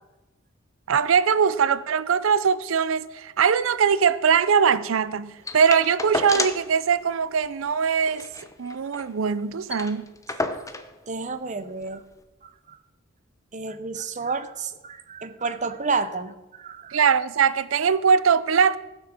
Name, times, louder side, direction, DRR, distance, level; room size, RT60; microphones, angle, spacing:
voice 1, 0.9-8.3 8.6-10.1 16.9-18.8, right 6 dB, 80° right, 0.5 m, -21 dB
sound 1, 5.5-6.7 7.1-7.2 7.4-7.6 8.0-9.1 9.4-9.5 9.7-10.9 11.8-11.9, left 2 dB, 15° left, 0.7 m, -31 dB
voice 2, 11.1-12.0 12.7-12.8 13.5-16.3 16.6-17.0, right 4 dB, 35° right, 0.7 m, -30 dB
16.0 x 6.2 x 6.4 m
head